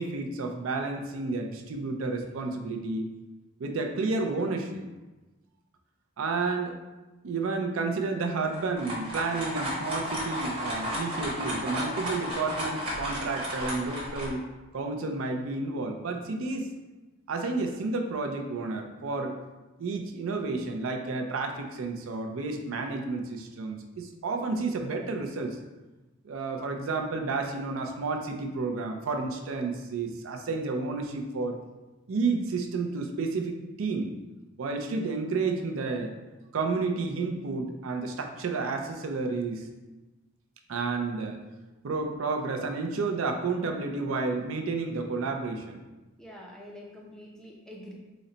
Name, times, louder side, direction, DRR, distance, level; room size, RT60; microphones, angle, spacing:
voice 1, 0.0-3.1 3.6-4.9 6.2-6.8 7.2-14.4 14.7-16.7 17.3-19.4 19.8-25.6 26.2-31.6 32.1-34.1 34.6-36.2 36.5-39.6 40.7-41.4 41.8-45.8, right 3 dB, 80° right, 4 dB, 0.4 m, -31 dB
sound 1, 8.5-14.3, equal, 25° right, 0.9 m, -33 dB
voice 2, 46.2-47.9, left 1 dB, 5° left, -3 dB, 0.4 m, -46 dB
4.0 x 2.1 x 3.8 m, 1.1 s
head